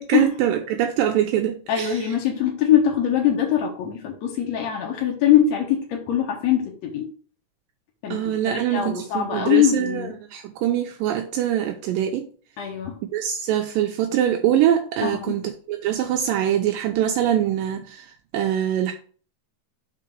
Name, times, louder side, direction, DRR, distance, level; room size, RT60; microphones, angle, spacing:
voice 1, 0.0-2.0 8.1-12.3 13.1-18.1 18.3-18.9, right 10 dB, 85° right, 1.9 m, -23 dB
voice 2, 1.7-7.1 8.0-8.2 8.4-10.1 12.6-13.0 15.0-15.4, left 10 dB, 75° left, 1.6 m, -22 dB
6.0 x 3.8 x 6.1 m
omnidirectional pair, 4.8 m